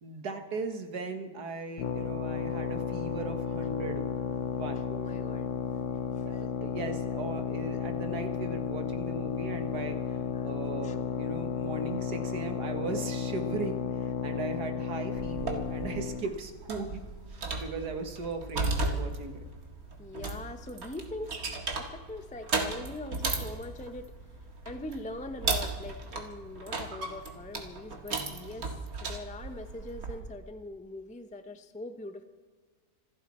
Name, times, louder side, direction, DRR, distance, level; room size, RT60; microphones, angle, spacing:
voice 1, 0.0-4.1 4.5-4.8 6.2-17.0 17.3-19.4, right 3 dB, 85° right, 5 dB, 2.1 m, -38 dB
sound 1, 1.8-16.3, left 7 dB, 60° left, 1.0 m, -33 dB
voice 2, 4.7-5.5 6.1-6.4 10.3-10.5 10.8-11.0 20.0-21.4 21.8-24.1 24.6-32.2, left 2 dB, 10° left, 8 dB, 0.5 m, -42 dB
sound 2, 15.2-30.2, right 3 dB, 65° right, 2.2 m, -36 dB
27.0 x 10.5 x 4.3 m, 1.5 s
omnidirectional pair, 1.7 m